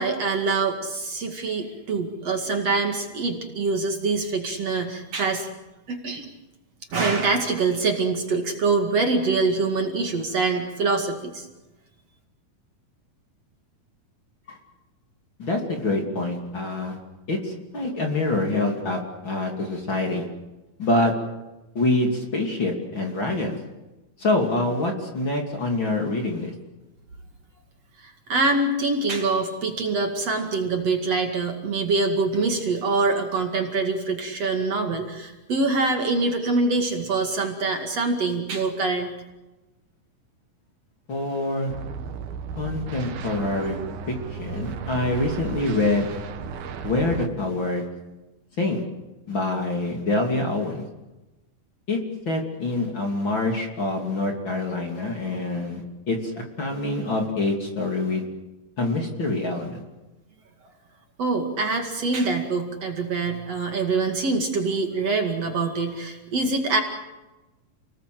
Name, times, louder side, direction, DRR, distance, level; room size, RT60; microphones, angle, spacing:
voice 1, 0.0-5.5 5.9-6.3 6.9-11.4 28.0-39.1 61.2-66.8, right 3 dB, 50° right, 3 dB, 3.1 m, -24 dB
voice 2, 15.4-17.0 17.3-20.2 20.8-21.1 21.7-23.6 24.2-26.5 41.1-41.7 42.6-43.8 44.1-46.2 46.8-47.9 48.6-48.8 49.3-50.8 51.9-52.0 52.3-56.3 56.6-58.3 58.8-59.8, left 2 dB, 35° left, 2 dB, 3.2 m, -25 dB
sound 1, 41.7-47.3, right 6 dB, 90° right, 3.5 m, -35 dB
30.0 x 19.5 x 7.8 m, 1.1 s
omnidirectional pair, 4.1 m